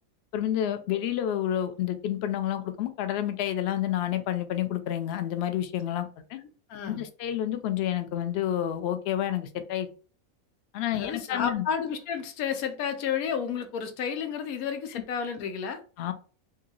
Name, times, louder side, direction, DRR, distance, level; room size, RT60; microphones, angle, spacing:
voice 1, 0.3-6.4 6.9-9.9 10.7-11.6 16.0-16.1, left 11 dB, 65° left, 0.6 m, -29 dB
voice 2, 6.7-7.0 10.9-15.8, left 7 dB, 85° left, 1.1 m, -31 dB
2.8 x 2.8 x 3.7 m
omnidirectional pair, 1.5 m